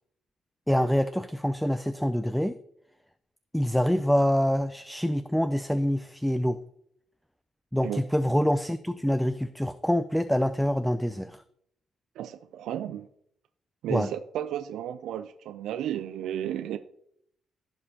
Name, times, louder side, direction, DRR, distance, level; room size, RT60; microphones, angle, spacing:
voice 1, 0.7-2.6 3.5-6.6 7.7-11.4 13.9-14.1, equal, ahead, 12 dB, 0.4 m, -26 dB
voice 2, 12.2-13.1 13.8-16.8, right 11 dB, 80° right, 10 dB, 0.4 m, -33 dB
15.0 x 5.1 x 2.9 m, 0.71 s
cardioid pair, 90°, 0 cm